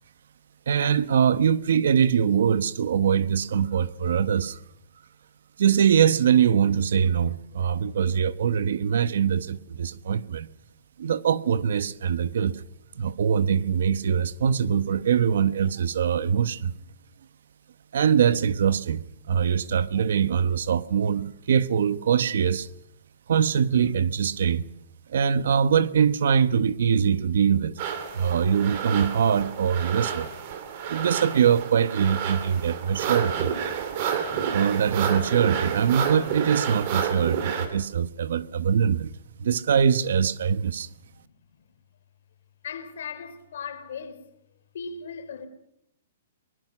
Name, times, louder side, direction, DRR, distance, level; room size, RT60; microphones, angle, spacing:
voice 1, 0.7-4.6 5.6-10.5 11.0-12.6 13.0-16.7 17.9-22.7 23.3-24.7 25.1-27.7 28.1-30.3 30.9-33.5 34.5-39.1 39.4-40.9, right 7 dB, 70° right, 1.1 m, -23 dB
sound 1, 27.8-37.7, right 7 dB, 35° right, 3.0 m, -30 dB
voice 2, 42.6-44.2 44.7-45.5, left 6 dB, 65° left, 3.4 m, -37 dB
23.5 x 20.0 x 6.1 m
hypercardioid pair, 170°, 0 cm